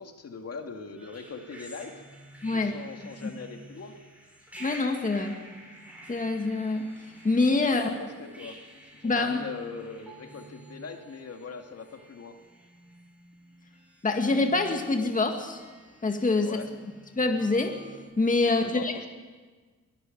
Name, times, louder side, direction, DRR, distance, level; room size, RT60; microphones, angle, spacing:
voice 1, 0.0-1.9 2.5-4.0 7.6-8.6 9.0-12.3 16.4-16.7 18.4-19.1, left 4 dB, 50° left, 4 dB, 2.2 m, -41 dB
sound 1, 0.9-18.1, right 1 dB, 5° right, 7.2 m, -50 dB
voice 2, 2.4-2.7 4.6-5.4 6.1-6.9 7.2-7.9 9.0-9.4 14.0-15.6 16.0-16.6 17.2-17.8 18.2-18.9, left 3 dB, 25° left, 4 dB, 2.0 m, -25 dB
22.5 x 13.0 x 9.2 m, 1.4 s
cardioid pair, 115°, 31 cm